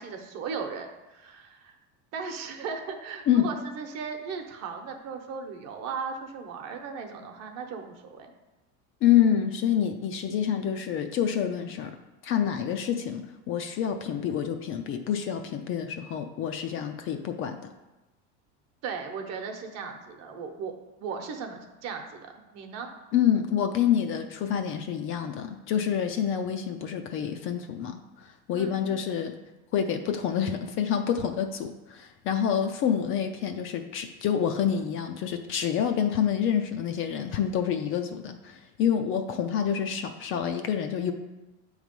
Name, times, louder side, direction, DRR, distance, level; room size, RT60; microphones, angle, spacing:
voice 1, 0.0-1.7 2.1-8.3 18.8-20.7 21.0-22.9 28.5-28.8, right 5 dB, 50° right, 4 dB, 0.9 m, -37 dB
voice 2, 9.0-11.9 12.2-17.7 23.1-29.3 29.7-41.1, left 9 dB, 40° left, 6 dB, 0.4 m, -27 dB
8.1 x 3.2 x 5.2 m, 1.0 s
cardioid pair, 145°, 34 cm